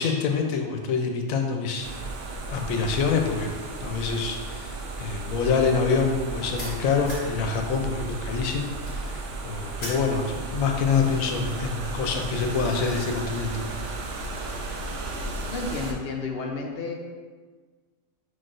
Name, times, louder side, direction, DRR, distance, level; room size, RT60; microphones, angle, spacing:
voice 1, 0.0-1.9 2.5-3.5 3.8-8.7 8.9-9.2 9.4-13.6, left 5 dB, 85° left, 3 dB, 1.0 m, -26 dB
sound 1, 1.8-15.9, right 3 dB, 70° right, 0.9 m, -34 dB
sound 2, 6.4-7.4 7.7-10.1, equal, 40° left, 1.8 m, -40 dB
voice 2, 15.5-16.9, left 3 dB, 65° left, 1 dB, 0.6 m, -31 dB
4.9 x 3.9 x 2.5 m, 1.5 s
omnidirectional pair, 1.4 m